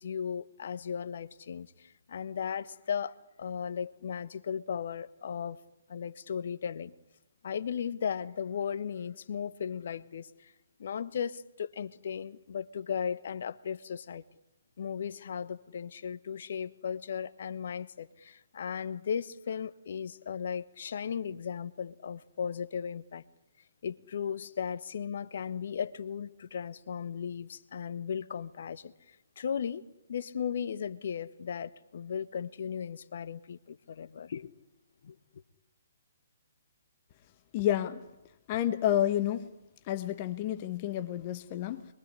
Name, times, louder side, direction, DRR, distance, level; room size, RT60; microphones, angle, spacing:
voice 1, 0.0-5.6 5.9-6.9 7.4-10.5 10.8-14.2 14.8-23.2 23.8-29.8 30.1-34.5 35.0-35.1, left 7 dB, 55° left, 1.3 m, -36 dB
voice 2, 37.5-38.0 38.5-39.5 39.9-41.9, left 11 dB, 35° left, 1.4 m, -30 dB
26.0 x 22.5 x 9.9 m
figure-of-eight pair, 130°, 0 cm